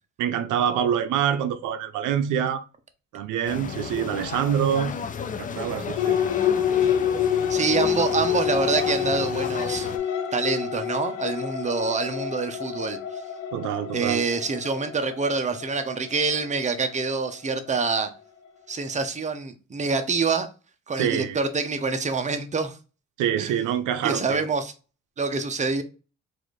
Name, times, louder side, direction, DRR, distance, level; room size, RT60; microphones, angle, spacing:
voice 1, 0.2-2.6 3.1-4.9 5.4-6.2 13.5-14.2 21.0-21.4 23.2-24.5, right 9 dB, 90° right, 0.5 m, -25 dB
sound 1, 3.5-10.0, left 6 dB, 25° left, 0.4 m, -33 dB
sound 2, 6.0-17.9, left 9 dB, 90° left, 0.7 m, -27 dB
voice 2, 7.5-9.9 10.3-13.0 13.9-18.1 18.7-20.5 20.9-22.8 23.4-23.5 24.0-24.7 25.2-25.8, right 4 dB, 25° right, 0.7 m, -26 dB
4.0 x 2.5 x 3.1 m
cardioid pair, 90°, 30 cm